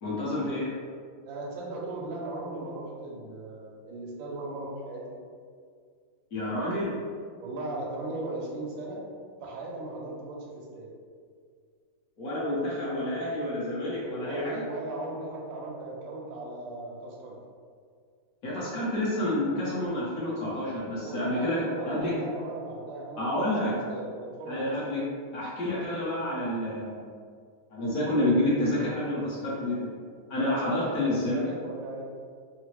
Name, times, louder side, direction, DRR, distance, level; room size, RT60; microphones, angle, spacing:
voice 1, 0.0-0.7 6.3-6.9 12.2-14.6 18.4-22.1 23.2-23.7 24.5-25.0 25.3-27.0 27.7-29.8 30.3-31.4, left 1 dB, 55° left, -7 dB, 1.0 m, -29 dB
voice 2, 1.2-5.2 7.4-9.0 9.4-10.9 14.0-17.4 20.9-24.7 30.4-32.0, right 2 dB, 75° right, -2 dB, 1.3 m, -37 dB
3.7 x 2.0 x 3.0 m, 2.1 s
omnidirectional pair, 2.3 m